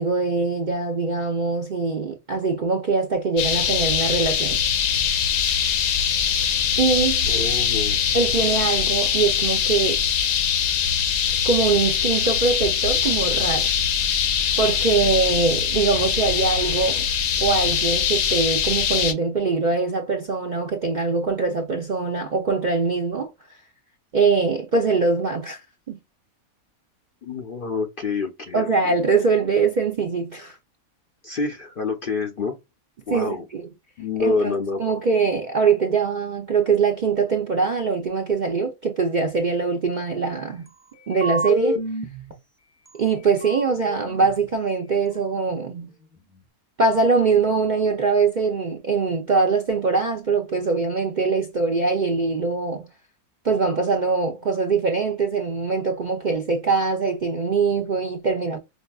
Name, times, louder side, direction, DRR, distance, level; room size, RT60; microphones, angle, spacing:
voice 1, 0.0-4.6 6.8-7.3 8.1-10.0 11.4-13.7 14.6-17.1 17.4-23.3 24.1-26.0 28.5-30.6 33.1-33.7 34.2-34.5 34.8-40.7 41.1-41.8 43.0-45.9 46.8-52.9 53.4-58.6, right 4 dB, 55° right, 0.5 m, -22 dB
sound 1, 3.4-19.1, left 8 dB, 80° left, 1.2 m, -22 dB
voice 2, 7.3-8.0 27.2-29.0 31.2-32.6 33.1-33.4 34.0-34.8, left 4 dB, 60° left, 0.6 m, -27 dB
sound 2, 41.0-42.3 42.9-43.0 43.2-44.5, left 1 dB, 10° right, 0.7 m, -28 dB
5.2 x 2.5 x 2.2 m
omnidirectional pair, 1.5 m